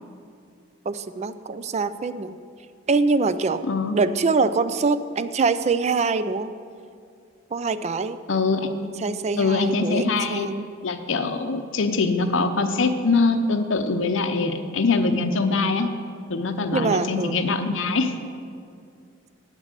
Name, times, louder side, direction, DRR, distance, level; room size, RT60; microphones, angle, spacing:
voice 1, 0.9-2.3 2.9-3.6 3.9-6.5 7.5-8.2 8.8-10.7 16.7-17.4, right 4 dB, 35° right, 13 dB, 0.4 m, -24 dB
voice 2, 3.6-4.0 8.3-8.7 9.4-10.5 10.8-15.9 16.3-18.2, left 3 dB, 65° left, 8 dB, 0.7 m, -23 dB
9.0 x 7.3 x 6.6 m, 2.3 s
head